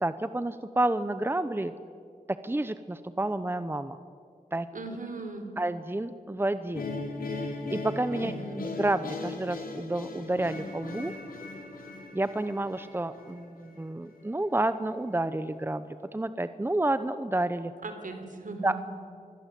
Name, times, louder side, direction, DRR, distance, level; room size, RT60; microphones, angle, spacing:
voice 1, 0.0-1.7 2.3-4.0 4.5-4.7 5.6-6.9 7.4-8.3 8.8-11.1 12.1-17.7 18.6-18.8, right 2 dB, 15° right, 12 dB, 0.9 m, -30 dB
voice 2, 4.7-5.5 8.1-8.7 17.8-18.8, right 3 dB, 70° right, 7 dB, 3.7 m, -38 dB
sound 1, 6.7-13.8, left 3 dB, 85° left, 3.7 m, -38 dB
26.5 x 21.0 x 8.4 m, 2.3 s
wide cardioid pair, 75°, 14 cm